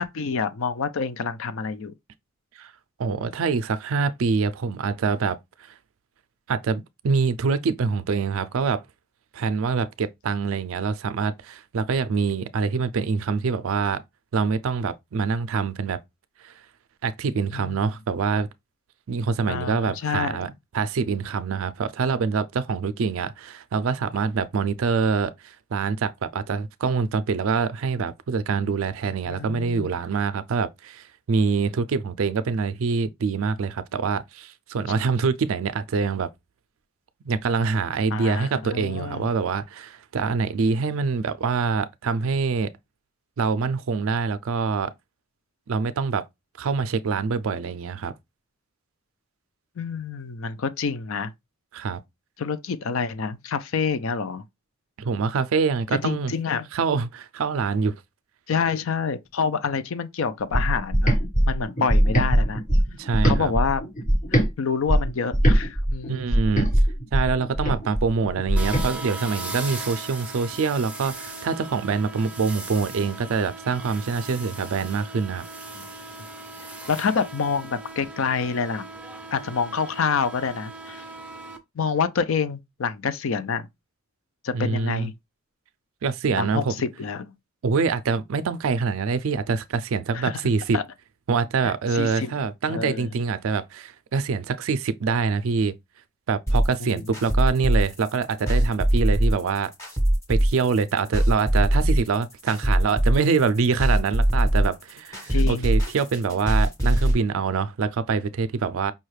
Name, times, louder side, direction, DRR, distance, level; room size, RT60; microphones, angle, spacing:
voice 1, 0.0-1.9 17.5-17.8 19.5-20.5 29.0-29.9 38.1-39.3 49.8-51.3 52.4-54.4 55.9-56.7 58.5-61.1 61.4-62.6 63.2-63.8 64.6-66.2 75.8-75.9 76.9-78.9 79.3-81.0 81.8-83.7 84.4-85.1 86.3-87.3 90.1-90.3 90.7-90.8 91.9-92.3 92.7-93.1 96.8-96.9 105.3-105.7, left 5 dB, 65° left, 0.5 m, -27 dB
voice 2, 3.0-5.4 6.5-8.8 9.3-14.0 14.3-16.0 16.4-16.5 17.0-18.5 19.1-36.3 37.2-42.7 43.4-44.9 45.7-46.2 46.6-48.1 51.7-52.0 55.0-56.3 56.7-57.9 62.9-63.5 66.1-66.7 67.1-75.5 84.5-85.1 86.0-86.8 87.6-90.8 91.3-95.8 96.3-99.7 100.3-108.9, right 5 dB, 65° right, 0.4 m, -25 dB
sound 1, 60.5-64.5 64.9-68.9, right 1 dB, 35° left, 1.2 m, -21 dB
sound 2, 68.6-81.6, right 2 dB, 5° right, 0.5 m, -38 dB
sound 3, 96.5-107.1, right 1 dB, 15° left, 1.3 m, -22 dB
5.4 x 2.3 x 3.2 m
head